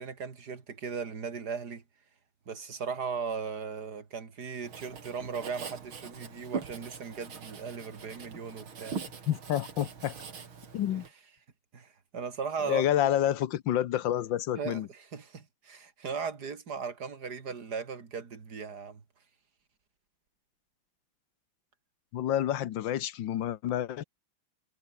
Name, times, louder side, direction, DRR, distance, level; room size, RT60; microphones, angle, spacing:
voice 1, 0.0-1.8 2.5-9.0 10.9-11.0 11.7-12.8 14.6-19.0, right 5 dB, 50° right, 3.0 m, -37 dB
Writing, 4.6-11.1, right 6 dB, 90° right, 3.4 m, -42 dB
voice 2, 9.3-10.1 10.7-11.0 12.7-14.9 22.1-24.0, left 11 dB, 70° left, 1.6 m, -29 dB
omnidirectional pair, 2.2 m